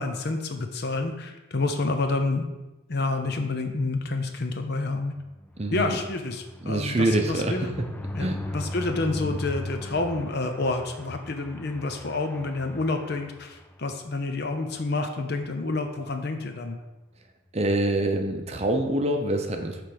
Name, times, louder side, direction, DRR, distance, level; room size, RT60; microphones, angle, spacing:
voice 1, 0.0-2.4 2.9-5.1 5.7-7.7 8.1-16.8, left 3 dB, 50° left, 6 dB, 0.8 m, -29 dB
sound 1, 5.1-14.0 14.4-14.6 14.8-14.9 15.2-15.5, left 1 dB, 10° left, 0.3 m, -38 dB
voice 2, 5.6-6.0 6.6-7.6 8.2-8.4 17.5-19.8, right 1 dB, 30° right, 4 dB, 0.6 m, -25 dB
8.2 x 3.4 x 5.9 m, 1.1 s
head